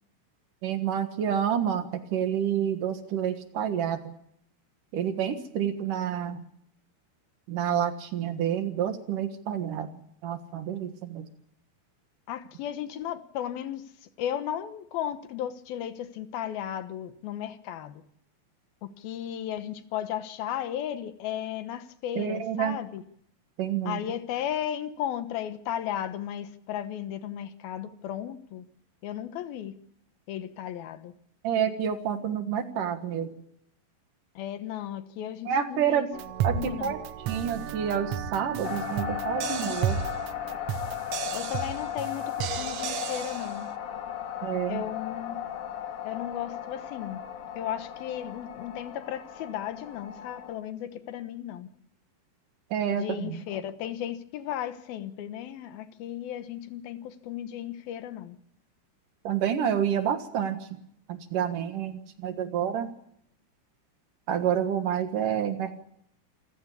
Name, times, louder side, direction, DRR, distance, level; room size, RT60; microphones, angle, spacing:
voice 1, 0.6-4.1 4.9-6.4 7.5-11.3 22.2-22.8 23.6-24.0 31.4-33.3 35.5-36.1 36.4-37.0 37.3-40.0 44.4-44.8 52.7-53.4 59.2-60.8 61.1-62.9 64.3-65.8, right 9 dB, 65° right, 3.0 m, -29 dB
voice 2, 12.3-18.0 18.8-23.0 23.9-28.7 29.0-29.8 30.3-31.1 34.4-36.1 36.5-36.9 41.3-43.8 44.7-45.4 46.0-47.2 47.6-51.7 53.0-58.4, left 10 dB, 75° left, 3.0 m, -35 dB
sound 1, 36.1-43.6, right 8 dB, 85° right, 1.3 m, -33 dB
sound 2, 38.6-50.6, left 10 dB, 55° left, 3.2 m, -36 dB
27.5 x 15.0 x 8.4 m
omnidirectional pair, 4.4 m